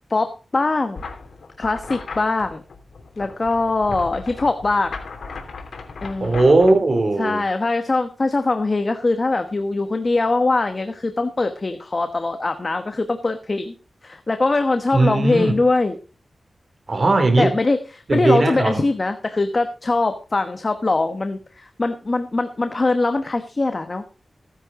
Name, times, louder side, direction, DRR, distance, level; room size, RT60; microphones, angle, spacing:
voice 1, 0.1-1.0 1.6-2.6 3.2-5.0 6.0-6.4 7.2-13.7 14.0-16.0 17.4-17.8 18.1-24.0, left 3 dB, 35° left, 1.1 m, -22 dB
sound 1, 1.0-6.7, left 4 dB, 85° left, 2.9 m, -36 dB
voice 2, 6.2-7.4 14.9-15.6 16.9-17.6 18.1-18.8, right 2 dB, 45° right, 2.5 m, -18 dB
16.0 x 10.0 x 3.7 m
wide cardioid pair, 130°, 0 cm